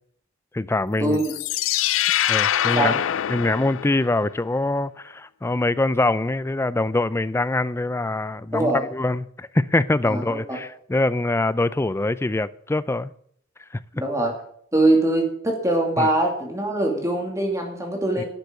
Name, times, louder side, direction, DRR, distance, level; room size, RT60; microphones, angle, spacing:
voice 1, 0.5-1.2 2.3-3.0 3.3-13.1 13.7-13.8 16.0-16.1 18.2-18.3, left 2 dB, 15° left, 0.4 m, -24 dB
sound 1, 1.1-4.3, left 11 dB, 85° left, 0.4 m, -24 dB
voice 2, 10.1-10.6 13.9-14.3 14.7-18.3, right 1 dB, 15° right, 2.5 m, -22 dB
12.0 x 6.6 x 7.7 m
head